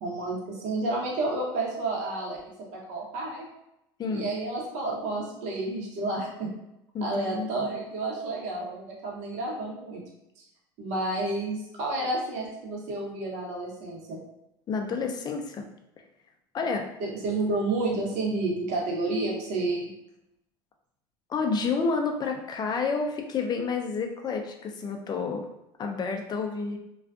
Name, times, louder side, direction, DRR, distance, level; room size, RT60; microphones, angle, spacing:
voice 1, 0.0-2.4 2.7-3.5 4.1-6.5 7.0-10.0 10.8-14.2 17.0-19.9, right 2 dB, 60° right, -2 dB, 0.9 m, -30 dB
voice 2, 4.0-4.3 6.9-7.7 14.7-15.6 16.5-16.9 21.3-25.5 25.8-26.8, left 4 dB, 30° left, 3 dB, 0.4 m, -29 dB
2.4 x 2.3 x 2.4 m, 0.86 s
hypercardioid pair, 90°, 13 cm